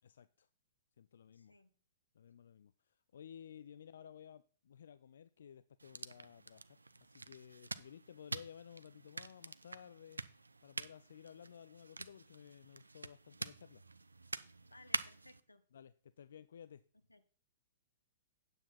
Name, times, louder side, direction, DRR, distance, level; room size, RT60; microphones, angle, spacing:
voice 1, 0.0-0.5 1.0-1.5 2.1-10.2 10.6-13.8 15.7-16.8, left 8 dB, 60° left, 15 dB, 0.3 m, -56 dB
voice 2, 1.3-1.7 14.7-15.6 17.1-17.2, left 2 dB, 85° left, 10 dB, 1.0 m, -61 dB
sound 1, 5.8-15.4, right 3 dB, 80° right, 0.5 m, -46 dB
9.3 x 7.6 x 4.2 m, 0.42 s
figure-of-eight pair, 110°, 0 cm